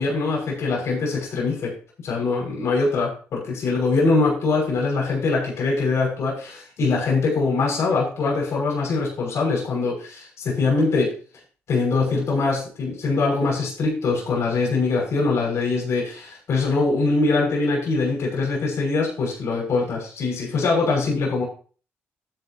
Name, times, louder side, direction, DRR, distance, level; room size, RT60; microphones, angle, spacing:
voice 1, 0.0-1.7 2.0-11.1 11.7-21.4, left 3 dB, 70° left, -2 dB, 6.2 m, -23 dB
12.5 x 10.5 x 2.9 m, 0.39 s
cardioid pair, 75°, 5 cm